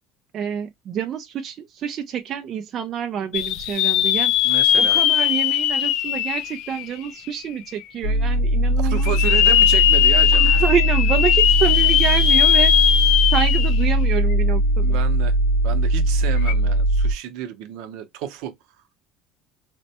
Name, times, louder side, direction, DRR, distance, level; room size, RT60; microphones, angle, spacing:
voice 1, 0.3-4.3 4.8-9.2 10.3-12.7 13.3-15.0, right 8 dB, 30° right, 0.3 m, -27 dB
sound 1, 3.3-7.3 7.8-7.9 9.0-13.9 14.3-14.4 16.4-16.5, left 11 dB, 55° left, 0.3 m, -19 dB
voice 2, 4.4-5.0 8.8-10.6 14.8-15.3 15.6-18.5, right 10 dB, 65° right, 0.7 m, -31 dB
sound 2, 8.0-17.1, right 1 dB, 80° left, 0.7 m, -20 dB
4.2 x 2.1 x 2.7 m
cardioid pair, 175°, 0 cm